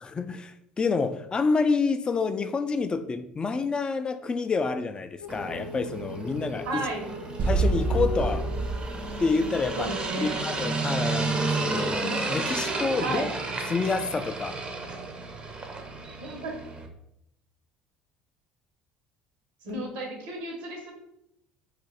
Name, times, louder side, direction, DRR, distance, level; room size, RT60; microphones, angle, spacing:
voice 1, 0.0-6.9 7.5-8.5 9.2-13.3 13.7-14.6, left 4 dB, 25° left, 0.3 m, -28 dB
Female singing, 5.2-10.9, left 5 dB, 85° left, 0.5 m, -40 dB
sound 1, 5.3-16.9, right 3 dB, 30° right, 0.6 m, -32 dB
voice 2, 6.6-7.1 9.8-10.4 13.0-13.3 16.2-16.5 19.6-20.9, right 2 dB, 80° right, 1.0 m, -33 dB
sound 2, 7.4-10.3, right 3 dB, 60° right, 0.8 m, -28 dB
2.6 x 2.5 x 3.9 m
supercardioid pair, 80°, 4 cm